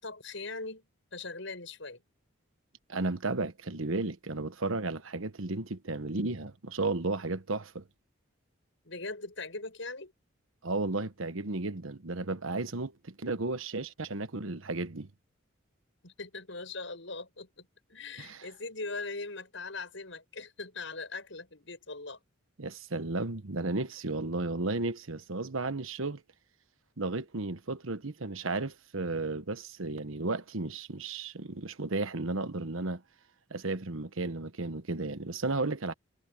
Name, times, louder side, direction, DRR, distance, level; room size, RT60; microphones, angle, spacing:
voice 1, 0.0-2.0 8.8-10.1 16.0-22.2, left 3 dB, 70° left, 6.6 m, -41 dB
voice 2, 2.9-7.8 10.6-15.1 18.2-18.5 22.6-26.2 27.0-33.0 33.5-35.9, right 3 dB, 80° right, 1.2 m, -34 dB
head